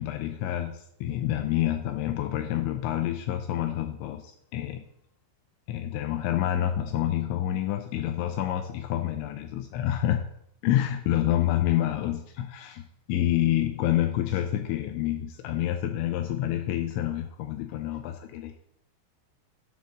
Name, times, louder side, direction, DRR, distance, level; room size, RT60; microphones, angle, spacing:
voice 1, 0.0-4.8 5.7-10.2 10.6-18.6, left 12 dB, 90° left, 6 dB, 2.6 m, -28 dB
11.0 x 3.8 x 6.4 m, 0.74 s
omnidirectional pair, 5.8 m